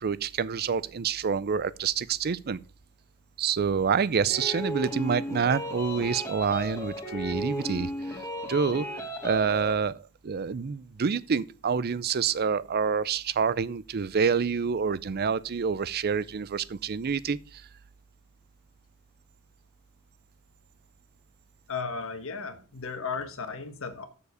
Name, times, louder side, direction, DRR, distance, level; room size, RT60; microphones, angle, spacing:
voice 1, 0.0-2.6 3.4-8.2 8.5-17.7, right 6 dB, 45° right, 0.5 m, -27 dB
sound 1, 4.3-9.8, equal, 15° left, 1.9 m, -35 dB
voice 2, 21.7-24.1, left 5 dB, 65° left, 1.5 m, -35 dB
7.1 x 6.9 x 6.6 m
head